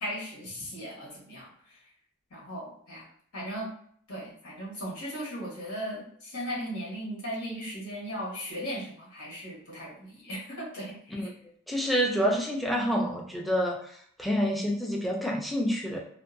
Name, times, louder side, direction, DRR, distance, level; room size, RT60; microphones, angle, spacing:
voice 1, 0.0-1.8 2.3-3.1 3.3-3.7 4.1-11.3, equal, 80° left, -5 dB, 1.2 m, -37 dB
voice 2, 11.7-16.0, equal, ahead, -1 dB, 0.4 m, -28 dB
2.5 x 2.2 x 2.5 m, 0.63 s
head